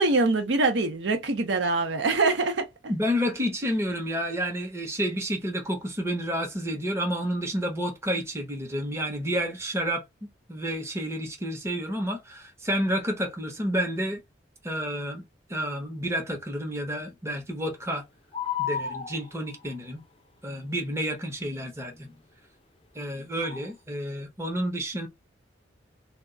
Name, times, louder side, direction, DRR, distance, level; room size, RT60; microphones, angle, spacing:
voice 1, 0.0-2.7, right 3 dB, 65° right, 0.6 m, -24 dB
voice 2, 2.9-10.0 10.5-14.2 14.6-15.2 15.5-18.0 18.6-20.0 20.4-22.2 22.9-25.1, equal, 15° right, 0.7 m, -30 dB
sound 1, 18.3-19.7 23.4-23.7, left 8 dB, 30° left, 0.4 m, -31 dB
2.3 x 2.1 x 3.7 m
head